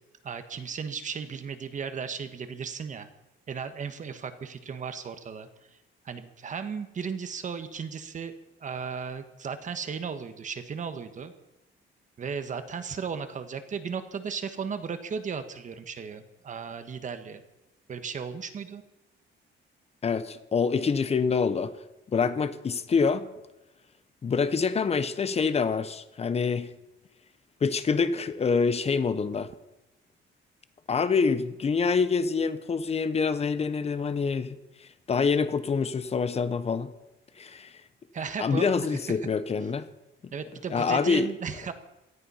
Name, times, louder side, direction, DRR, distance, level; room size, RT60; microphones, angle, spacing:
voice 1, 0.2-3.1 3.5-5.5 6.0-8.3 8.6-11.3 12.2-17.4 17.9-18.8 38.1-38.7 40.3-41.7, right 6 dB, 40° right, 10 dB, 1.3 m, -35 dB
voice 2, 20.0-21.7 22.1-23.3 24.2-26.7 27.6-29.5 30.9-34.6 35.1-36.9 37.4-37.7 38.4-39.9 40.7-41.3, left 5 dB, 30° left, 13 dB, 0.9 m, -26 dB
18.0 x 13.5 x 5.6 m, 0.96 s
cardioid pair, 160°, 20 cm